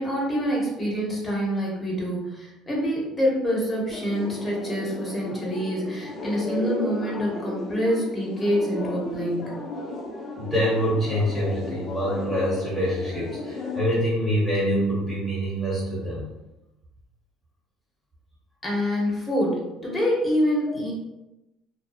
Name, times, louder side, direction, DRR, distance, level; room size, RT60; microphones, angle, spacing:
voice 1, 0.0-9.6 18.6-20.9, equal, 20° left, -4 dB, 1.1 m, -26 dB
sound 1, 3.9-13.8, left 2 dB, 40° left, 0.5 m, -34 dB
voice 2, 10.4-16.3, equal, ahead, -7 dB, 1.1 m, -25 dB
2.6 x 2.3 x 2.3 m, 0.96 s
supercardioid pair, 95°, 0 cm